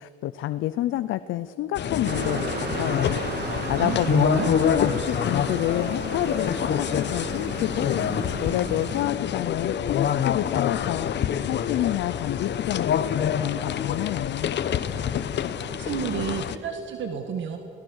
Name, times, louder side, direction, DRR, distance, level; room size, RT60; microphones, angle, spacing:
voice 1, 0.0-3.2 3.7-14.6, left 13 dB, 80° left, 13 dB, 0.6 m, -29 dB
sound 1, 1.7-16.6, left 8 dB, 60° left, 1.0 m, -27 dB
sound 2, 2.1-9.0, right 5 dB, 55° right, 2.1 m, -35 dB
voice 2, 3.8-4.5 15.7-17.6, right 7 dB, 70° right, 5 dB, 1.7 m, -30 dB
28.0 x 18.0 x 6.5 m, 2.8 s
cardioid pair, 90°, 20 cm